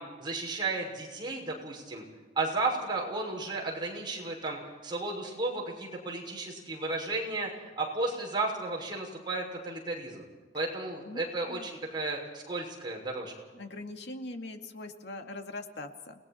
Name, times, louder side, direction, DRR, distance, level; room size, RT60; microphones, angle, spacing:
voice 1, 0.0-2.0 2.3-7.5 7.8-10.2 10.5-13.3, right 2 dB, 25° right, -2 dB, 6.4 m, -33 dB
voice 2, 11.1-11.7 13.5-16.1, left 2 dB, 70° left, 4 dB, 2.3 m, -42 dB
29.5 x 20.5 x 4.5 m, 1.3 s
head